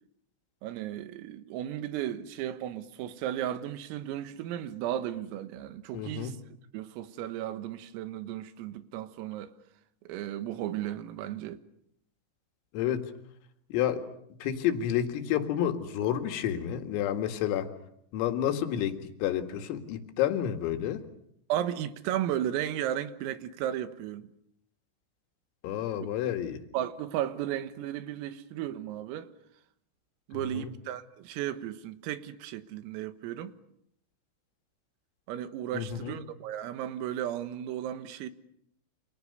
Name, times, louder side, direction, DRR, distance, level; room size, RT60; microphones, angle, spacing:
voice 1, 0.6-6.4 6.7-9.5 10.1-11.6 21.5-24.3 26.0-26.1 26.7-29.3 30.3-33.5 35.3-38.3, right 11 dB, 90° right, 4.1 m, -34 dB
voice 2, 5.9-6.3 12.7-13.1 13.7-14.0 14.4-17.7 18.1-21.0 25.6-26.6 30.3-30.7 35.7-36.2, left 10 dB, 85° left, 4.6 m, -30 dB
29.5 x 27.5 x 6.7 m
omnidirectional pair, 5.9 m